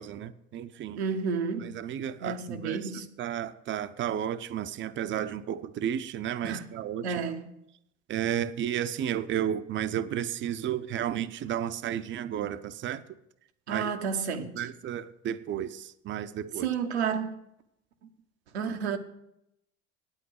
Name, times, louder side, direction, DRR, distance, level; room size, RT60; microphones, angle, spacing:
voice 1, 0.0-1.0 1.6-2.9 3.2-7.2 8.1-13.0 13.7-14.0 14.5-16.7, right 10 dB, 35° right, 0.7 m, -32 dB
voice 2, 1.0-1.8 2.2-3.1 6.4-6.7 7.0-7.5 13.7-14.6 16.6-17.3 18.5-19.0, right 6 dB, 85° right, 1.0 m, -31 dB
9.2 x 8.8 x 6.4 m
hypercardioid pair, 75°, 32 cm